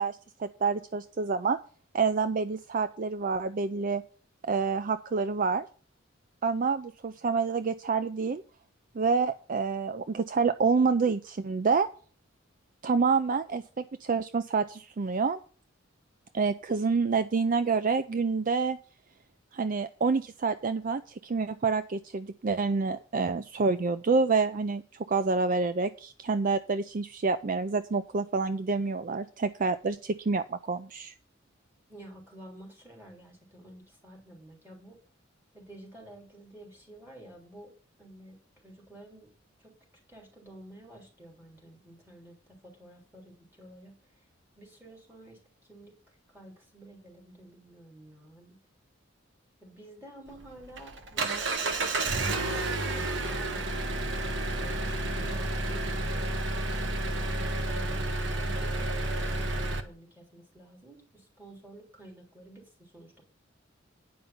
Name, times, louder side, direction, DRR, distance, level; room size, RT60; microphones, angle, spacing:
voice 1, 0.0-1.6 1.9-4.0 4.4-5.7 6.4-8.4 8.9-11.9 12.8-15.4 16.3-18.8 19.5-24.8 25.1-31.1, right 4 dB, 45° right, 11 dB, 0.4 m, -28 dB
voice 2, 31.9-35.0 35.5-37.7 38.0-39.3 39.6-39.7 40.1-44.2 44.6-48.6 49.6-52.6 52.9-54.1 54.6-63.2, right 1 dB, 10° right, -1 dB, 3.5 m, -51 dB
Engine, 50.3-59.8, right 2 dB, 65° right, 1.2 m, -30 dB
9.5 x 5.5 x 7.0 m, 0.41 s
head